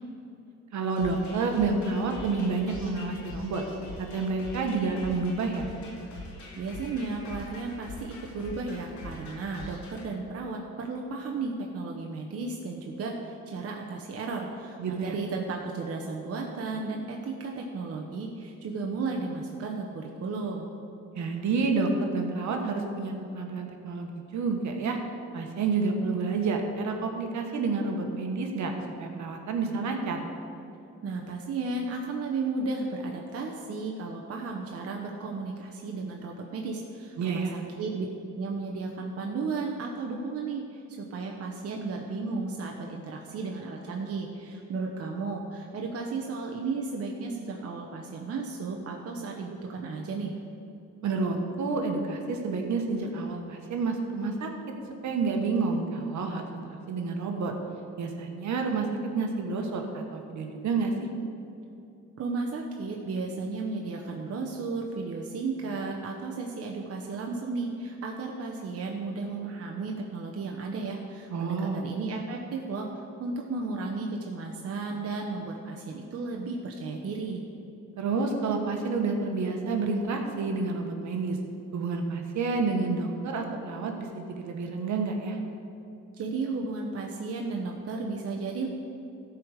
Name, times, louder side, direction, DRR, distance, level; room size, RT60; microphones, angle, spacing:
voice 1, 0.7-3.6 4.1-5.7 14.8-15.1 21.1-25.0 25.3-28.7 29.0-30.2 37.2-37.5 51.0-54.5 55.0-57.5 58.0-58.9 59.1-60.9 71.3-71.8 78.0-81.4 81.7-85.4, right 4 dB, 70° right, 3 dB, 1.4 m, -29 dB
sound 1, 1.0-10.1, left 2 dB, 70° left, 2.6 m, -44 dB
voice 2, 6.6-20.7 31.0-38.1 38.3-50.3 62.2-72.9 73.2-77.4 86.2-88.7, right 3 dB, 50° right, 1 dB, 1.0 m, -34 dB
13.5 x 4.9 x 6.5 m, 2.8 s
cardioid pair, 90°, 30 cm